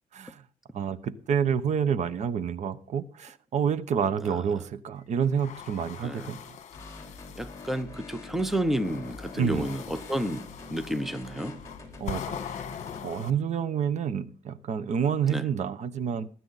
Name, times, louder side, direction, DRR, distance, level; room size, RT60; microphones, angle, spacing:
voice 1, 0.1-0.4 0.7-6.6 9.4-9.7 12.0-12.4 13.0-16.3, right 7 dB, 50° right, 0.9 m, -28 dB
voice 2, 4.2-4.6 6.0-6.3 7.3-11.6 15.3-15.5, right 1 dB, ahead, 0.8 m, -31 dB
sound 1, 5.2-7.8 8.4-13.3, left 8 dB, 55° left, 1.5 m, -42 dB
sound 2, 6.7-13.0, left 3 dB, 20° left, 3.5 m, -45 dB
19.5 x 9.2 x 4.1 m
cardioid pair, 145°, 15 cm